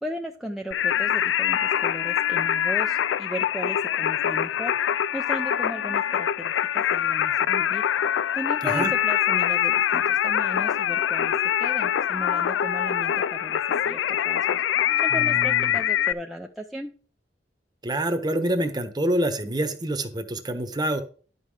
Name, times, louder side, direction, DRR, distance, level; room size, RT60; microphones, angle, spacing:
voice 1, 0.0-7.8 8.3-16.9, equal, ahead, 1 dB, 0.5 m, -36 dB
Singing, 0.7-16.1, left 10 dB, 85° left, 0.3 m, -24 dB
voice 2, 15.1-15.8 17.8-21.0, right 1 dB, 25° right, 8 dB, 1.1 m, -27 dB
11.0 x 5.6 x 4.9 m, 0.41 s
head